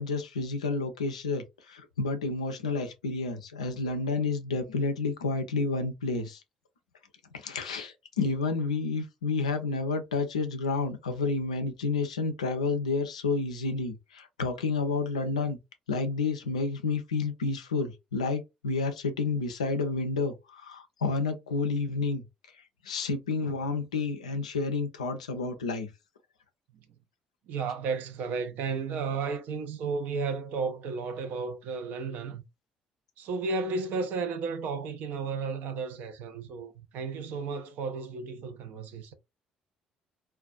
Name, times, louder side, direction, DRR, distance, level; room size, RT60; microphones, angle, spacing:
voice 1, 0.0-6.4 7.3-15.6 15.9-22.2 22.8-25.9, left 3 dB, 80° left, 0.4 m, -30 dB
voice 2, 27.5-32.4 33.2-39.1, right 4 dB, 55° right, 0.4 m, -33 dB
2.4 x 2.2 x 2.4 m
figure-of-eight pair, 50°, 3 cm